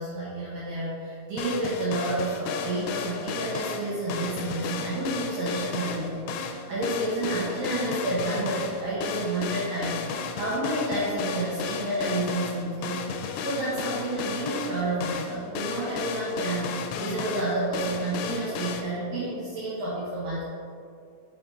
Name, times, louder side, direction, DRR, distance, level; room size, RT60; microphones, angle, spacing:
voice 1, 0.0-10.0 10.3-13.1 13.4-20.4, right 2 dB, 75° right, -8 dB, 2.2 m, -30 dB
sound 1, 1.4-18.8, left 6 dB, 85° left, 2.5 m, -34 dB
6.6 x 5.7 x 3.4 m, 2.3 s
omnidirectional pair, 5.3 m